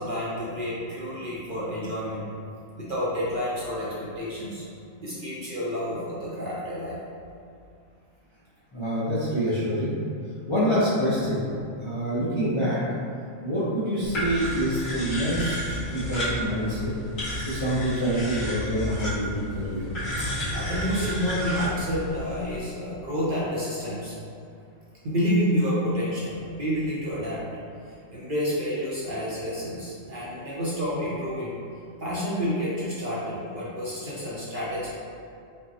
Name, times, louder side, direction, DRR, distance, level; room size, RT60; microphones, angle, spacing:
voice 1, 0.0-2.2 2.8-4.6 5.0-7.0 20.2-24.1 25.0-27.4 28.1-31.6 32.0-34.9, equal, 50° right, -8 dB, 0.7 m, -29 dB
voice 2, 8.7-9.9 10.5-11.4 11.8-12.8 13.4-16.9 17.5-19.9, equal, 35° left, -11 dB, 0.5 m, -26 dB
sound 1, 14.0-22.6, equal, 80° left, 2.0 m, -32 dB
5.1 x 2.1 x 2.8 m, 2.4 s
omnidirectional pair, 1.4 m